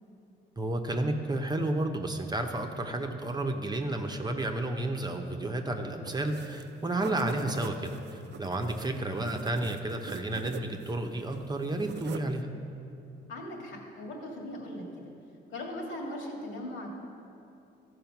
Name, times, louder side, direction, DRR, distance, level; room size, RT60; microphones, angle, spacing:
voice 1, 0.6-12.5, right 1 dB, 20° right, 4 dB, 0.8 m, -31 dB
sound 1, 6.1-6.7 7.0-11.0 11.3-12.4, right 9 dB, 60° right, 0.5 m, -43 dB
voice 2, 13.3-15.1 15.5-16.9, left 1 dB, 80° left, -1 dB, 2.2 m, -39 dB
13.5 x 4.9 x 5.9 m, 2.7 s
cardioid pair, 90°, 20 cm